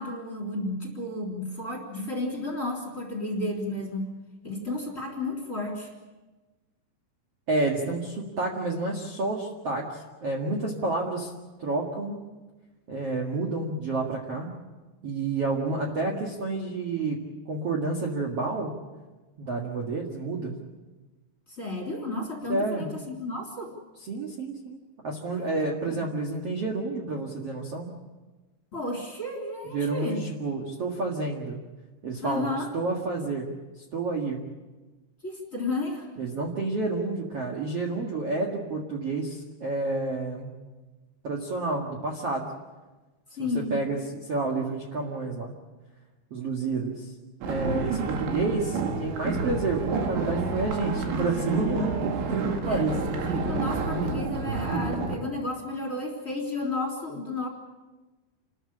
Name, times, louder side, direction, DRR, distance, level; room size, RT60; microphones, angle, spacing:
voice 1, 0.0-4.1 4.4-5.9 15.9-16.2 21.5-23.7 25.3-26.0 28.7-30.2 32.2-32.7 35.2-36.1 43.4-43.7 52.6-53.0 53.3-57.5, left 2 dB, 20° left, 1 dB, 3.0 m, -32 dB
voice 2, 7.5-11.3 11.6-12.2 12.9-14.5 15.0-17.2 17.5-18.7 19.4-20.5 22.5-22.9 24.1-24.8 25.0-27.9 29.6-31.6 32.0-33.5 33.8-34.4 36.2-40.5 41.2-42.5 43.4-45.5 46.3-47.1 47.5-53.0, right 3 dB, 45° right, -1 dB, 2.2 m, -29 dB
sound 1, 47.4-55.2, right 3 dB, 80° right, 4.4 m, -29 dB
28.5 x 14.0 x 8.6 m, 1.2 s
omnidirectional pair, 5.2 m